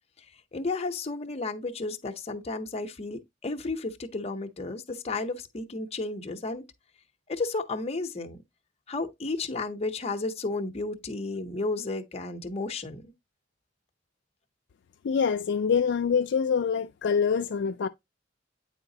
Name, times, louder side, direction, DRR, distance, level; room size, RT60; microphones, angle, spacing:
voice 1, 0.5-6.6 7.3-8.4 8.9-13.1, left 3 dB, 35° left, 0.7 m, -33 dB
voice 2, 15.0-17.9, left 6 dB, 65° left, 0.4 m, -25 dB
8.9 x 3.9 x 2.7 m
head